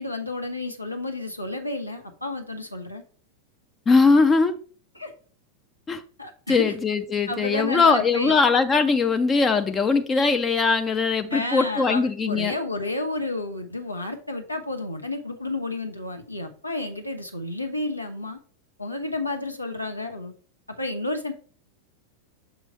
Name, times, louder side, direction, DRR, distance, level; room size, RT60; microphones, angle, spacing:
voice 1, 0.0-3.0 4.9-5.1 6.2-6.6 7.3-8.4 11.3-18.4 18.8-20.3 20.7-21.3, left 2 dB, 85° left, 0.9 m, -31 dB
voice 2, 3.9-4.6 5.9-6.0 6.5-12.5, left 4 dB, 20° left, 0.4 m, -20 dB
6.6 x 3.1 x 4.8 m
figure-of-eight pair, 90°, 0 cm